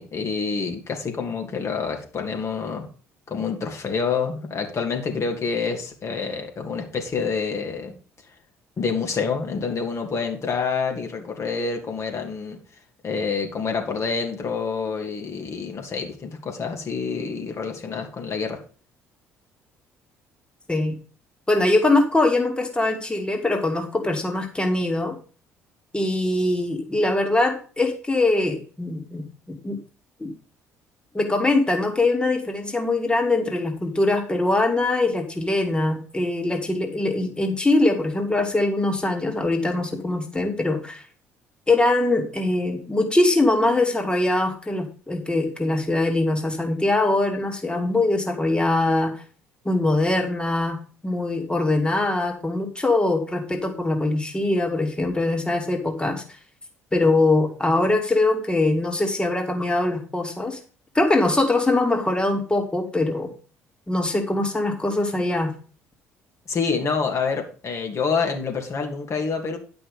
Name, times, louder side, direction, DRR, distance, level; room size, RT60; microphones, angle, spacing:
voice 1, 0.0-2.9 3.3-7.9 8.8-12.6 13.0-18.6 66.5-69.6, left 5 dB, 40° left, 3 dB, 2.8 m, -27 dB
voice 2, 21.5-25.2 25.9-29.8 30.2-30.3 31.1-41.0 41.7-49.1 49.6-50.8 51.0-56.2 56.9-60.6 60.9-63.3 63.9-65.5, left 2 dB, 15° left, 4 dB, 2.7 m, -22 dB
11.0 x 6.1 x 5.2 m, 0.39 s
figure-of-eight pair, 50°, 7 cm